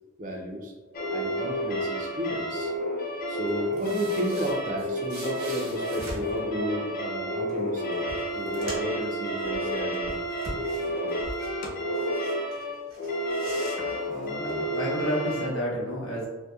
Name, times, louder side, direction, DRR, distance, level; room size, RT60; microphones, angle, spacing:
voice 1, 0.2-0.7 1.1-2.7 3.3-10.2 10.8-11.2, equal, 40° right, 0 dB, 0.4 m, -33 dB
sound 1, 0.9-15.5, equal, 45° left, 0.4 m, -31 dB
sound 2, 3.5-6.4 7.5-7.6 7.9-9.0 9.4-11.5 11.9-12.6 12.9-14.5, right 1 dB, 80° right, 1.0 m, -41 dB
voice 2, 13.9-16.3, equal, 85° left, -5 dB, 0.8 m, -31 dB
2.6 x 2.1 x 2.3 m, 1.3 s
head